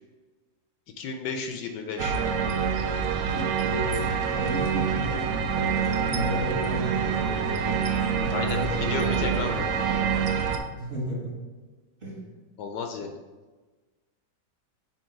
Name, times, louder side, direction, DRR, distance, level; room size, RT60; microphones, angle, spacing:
voice 1, 1.0-2.2 8.3-8.6 8.9-9.6 12.6-13.1, left 5 dB, 75° left, 4 dB, 1.1 m, -33 dB
sound 1, 2.0-10.6, right 6 dB, 85° right, 0.7 m, -26 dB
voice 2, 3.7-5.3 5.9-7.8 8.2-9.6 10.7-11.4 12.0-12.4, equal, 35° right, -6 dB, 1.4 m, -33 dB
7.1 x 2.9 x 4.6 m, 1.3 s
omnidirectional pair, 2.0 m